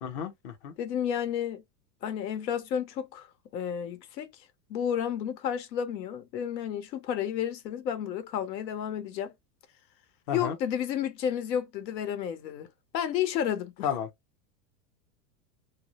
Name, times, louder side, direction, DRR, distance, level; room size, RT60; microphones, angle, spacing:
voice 1, 0.0-0.7 10.3-10.6 13.8-14.1, left 8 dB, 40° left, 0.6 m, -32 dB
voice 2, 0.8-1.6 2.0-3.3 3.5-4.3 4.7-9.3 10.3-12.7 12.9-13.9, left 9 dB, 90° left, 0.9 m, -31 dB
2.2 x 2.0 x 2.7 m
supercardioid pair, 160°, 49 cm